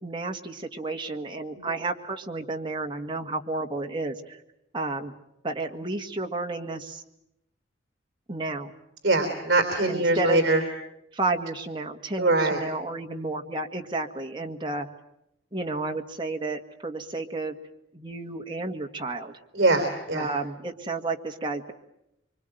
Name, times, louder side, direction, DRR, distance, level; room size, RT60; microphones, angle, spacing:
voice 1, 0.0-4.4 4.7-5.1 5.4-7.0 8.3-8.7 9.9-10.4 11.1-14.9 15.5-17.6 17.9-19.3 20.1-21.7, right 2 dB, 25° right, 3 dB, 1.8 m, -31 dB
voice 2, 9.0-10.6 12.2-12.6 19.5-20.3, right 2 dB, 55° right, 5 dB, 3.6 m, -22 dB
25.5 x 25.0 x 9.1 m, 0.83 s
head